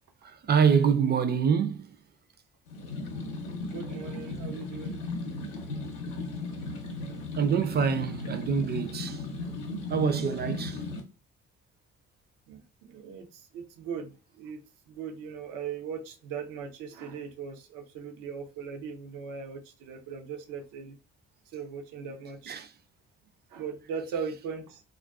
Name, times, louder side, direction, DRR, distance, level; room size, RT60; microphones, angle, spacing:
voice 1, 0.2-1.9 7.4-9.2 9.9-10.8 22.5-22.7, right 6 dB, 30° right, 0.4 m, -25 dB
sound 1, 2.7-11.0, left 2 dB, 85° left, 0.6 m, -36 dB
voice 2, 3.7-5.0 12.5-21.0 21.5-22.6 23.5-24.8, right 6 dB, 70° right, 0.6 m, -39 dB
2.4 x 2.2 x 2.3 m
hypercardioid pair, 50°, 34 cm